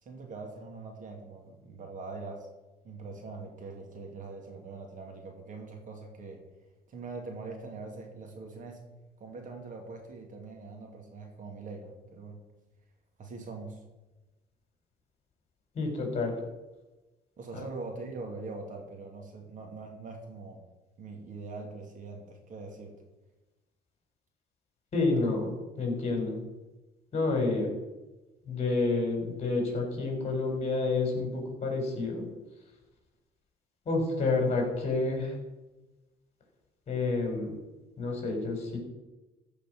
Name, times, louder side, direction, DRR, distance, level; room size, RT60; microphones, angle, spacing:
voice 1, 0.0-2.5 2.8-6.4 6.9-8.8 9.2-12.4 13.2-13.8 17.4-20.6 21.0-22.9, right 3 dB, 50° right, 2 dB, 2.6 m, -42 dB
voice 2, 15.7-16.4 17.5-17.7 24.9-26.4 27.1-27.7 28.5-32.3 33.9-35.4 36.9-37.5 38.0-38.8, left 3 dB, 40° left, 1 dB, 4.3 m, -29 dB
15.0 x 5.2 x 6.2 m, 1.1 s
cardioid pair, 110°, 17 cm